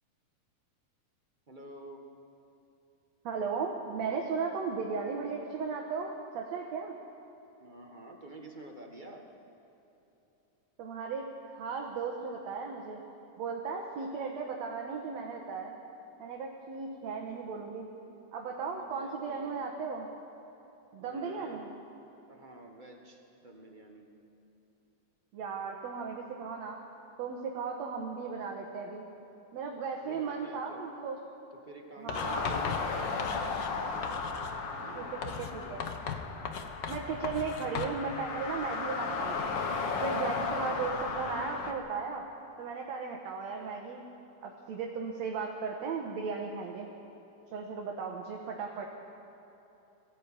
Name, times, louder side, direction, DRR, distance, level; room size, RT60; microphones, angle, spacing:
voice 1, 1.5-2.0 7.6-9.2 17.6-19.7 21.0-21.7 22.3-24.1 30.0-30.9 31.6-35.8 40.5-40.7, right 2 dB, 45° right, 1 dB, 0.6 m, -50 dB
voice 2, 3.2-6.9 10.8-13.0 13.4-15.7 16.2-17.9 18.3-20.1 20.9-21.7 25.3-26.8 27.2-29.1 29.5-31.2 32.0-32.6 35.0-35.1 35.4-35.8 36.9-39.6 40.0-42.2 42.6-44.0 44.4-46.9 47.5-48.9, right 5 dB, 65° right, 0 dB, 2.4 m, -36 dB
Writing, 32.1-33.8 34.0-34.6 35.2-38.0, left 6 dB, 80° left, 0.9 m, -38 dB
sound 1, 32.1-41.7, left 4 dB, 55° left, 1.4 m, -35 dB
20.5 x 15.0 x 8.9 m, 3.0 s
omnidirectional pair, 3.6 m